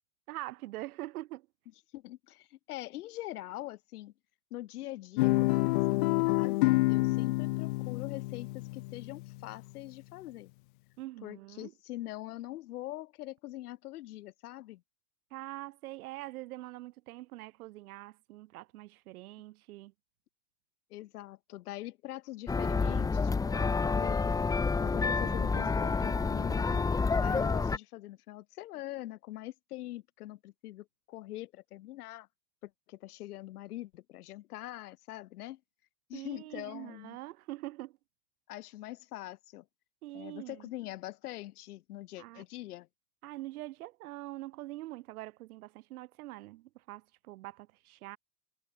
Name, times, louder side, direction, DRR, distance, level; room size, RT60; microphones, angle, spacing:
voice 1, 0.3-1.5 11.0-11.7 15.3-19.9 36.1-38.0 40.0-40.7 42.2-42.4 43.2-48.2, right 17 dB, 70° right, 3.3 m, -44 dB
voice 2, 1.9-4.1 4.5-10.5 11.2-14.8 20.9-24.5 24.8-26.9 27.2-32.3 32.6-35.6 36.1-37.2 38.5-39.6 40.1-42.9, left 16 dB, 75° left, 7.6 m, -43 dB
Guitar, 5.2-9.5, left 22 dB, 35° left, 0.4 m, -28 dB
sound 1, 22.5-27.8, left 4 dB, 10° left, 1.4 m, -29 dB
supercardioid pair, 160°, 46 cm